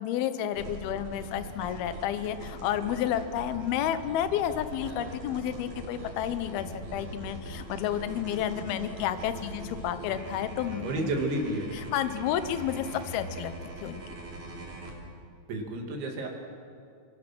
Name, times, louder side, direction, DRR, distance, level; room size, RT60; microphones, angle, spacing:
voice 1, 0.0-11.1 11.7-13.5 13.8-14.0, left 10 dB, 75° left, 11 dB, 2.3 m, -31 dB
sound 1, 0.5-14.9, right 2 dB, 40° right, 4.4 m, -42 dB
voice 2, 10.7-11.7 15.5-16.3, right 1 dB, 70° right, 1 dB, 4.8 m, -31 dB
25.0 x 23.5 x 6.2 m, 2.3 s
omnidirectional pair, 5.6 m